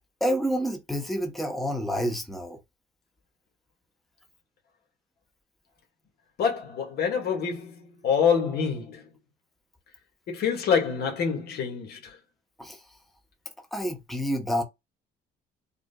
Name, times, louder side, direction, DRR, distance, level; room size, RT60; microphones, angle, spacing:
voice 1, 0.2-2.6 12.6-12.8 13.7-14.6, equal, ahead, 1.0 m, -28 dB
voice 2, 6.4-9.1 10.3-12.2, left 6 dB, 70° left, 1.9 m, -26 dB
4.9 x 2.6 x 2.3 m
cardioid pair, 110°, 17 cm